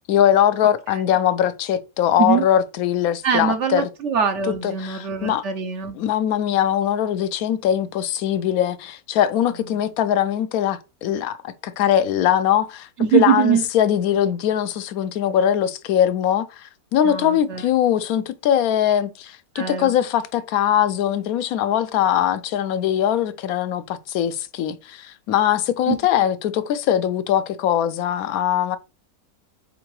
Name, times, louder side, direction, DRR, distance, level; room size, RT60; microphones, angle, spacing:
voice 1, 0.1-3.9 4.6-5.4 6.0-28.8, left 10 dB, 75° left, 1.0 m, -21 dB
voice 2, 3.2-6.0 13.0-13.7 17.0-17.7 19.6-19.9 25.9-26.0, right 8 dB, 60° right, 0.8 m, -22 dB
4.3 x 3.8 x 3.0 m
omnidirectional pair, 1.6 m